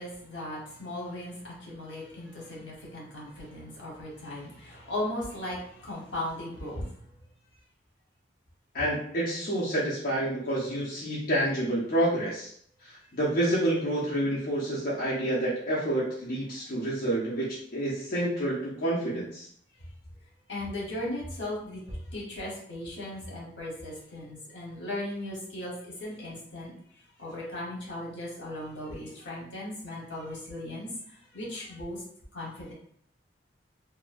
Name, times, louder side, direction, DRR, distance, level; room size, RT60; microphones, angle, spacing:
voice 1, 0.0-6.8 20.5-25.7 26.0-26.7 27.2-30.9 31.3-32.0 32.3-32.7, left 1 dB, 80° left, -5 dB, 1.1 m, -37 dB
voice 2, 8.7-12.5 12.8-19.5, right 1 dB, 55° left, -8 dB, 0.7 m, -28 dB
3.0 x 2.3 x 2.5 m, 0.65 s
head